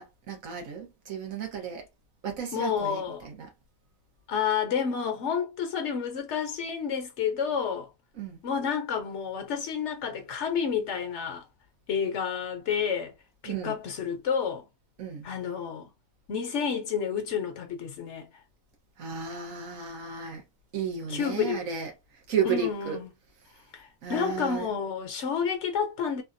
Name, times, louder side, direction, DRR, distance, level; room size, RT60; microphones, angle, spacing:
voice 1, 0.0-1.8 2.2-3.5 8.2-8.4 13.4-13.8 15.0-15.3 19.0-20.4 20.7-21.9 22.3-23.0 24.0-24.7, right 6 dB, 75° right, 1.4 m, -33 dB
voice 2, 2.5-3.3 4.3-7.9 8.4-11.5 11.9-13.1 13.4-14.7 15.2-15.9 16.3-18.3 21.1-21.6 22.4-23.1 23.7-26.2, left 7 dB, 60° left, 1.0 m, -30 dB
3.4 x 2.4 x 2.6 m
omnidirectional pair, 1.4 m